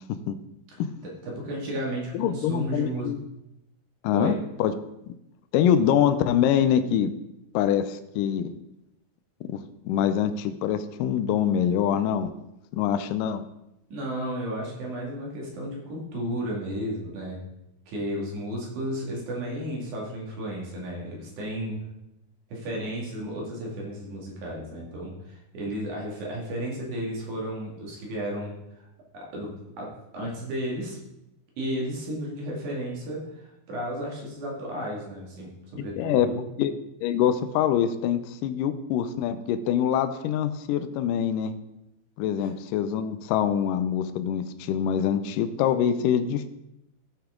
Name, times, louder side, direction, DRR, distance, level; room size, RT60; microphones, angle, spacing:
voice 1, 1.0-3.2 4.1-4.4 13.9-17.4 17.9-21.8 22.5-28.9 29.1-31.0 31.6-36.5 42.4-42.5, right 1 dB, 55° right, -2 dB, 3.4 m, -33 dB
voice 2, 2.1-3.2 4.0-4.7 5.5-7.1 7.5-8.5 9.5-12.3 12.7-13.4 36.0-36.3 36.6-36.7 37.0-41.6 42.2-46.5, left 9 dB, 80° left, 10 dB, 2.0 m, -24 dB
15.0 x 5.9 x 3.7 m, 0.86 s
omnidirectional pair, 4.4 m